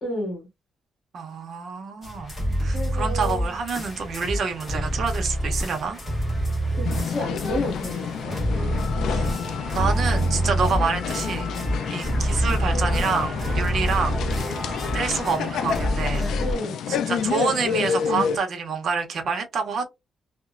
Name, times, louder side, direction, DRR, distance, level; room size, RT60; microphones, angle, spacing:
voice 1, 0.0-0.5 2.6-3.5 6.7-8.4 16.4-16.8, left 1 dB, 40° left, 1.6 m, -31 dB
voice 2, 1.1-2.3 2.6-6.0 9.1-9.3 9.7-11.5 11.9-14.2 14.9-16.3 16.9-19.9, right 5 dB, 50° right, 0.7 m, -27 dB
sound 1, 2.0-16.5, equal, 20° left, 1.1 m, -27 dB
sound 2, 3.6-10.1, right 2 dB, 5° right, 0.7 m, -44 dB
sound 3, 6.8-18.4, left 7 dB, 75° left, 0.3 m, -29 dB
2.9 x 2.0 x 2.4 m
wide cardioid pair, 175°, 0 cm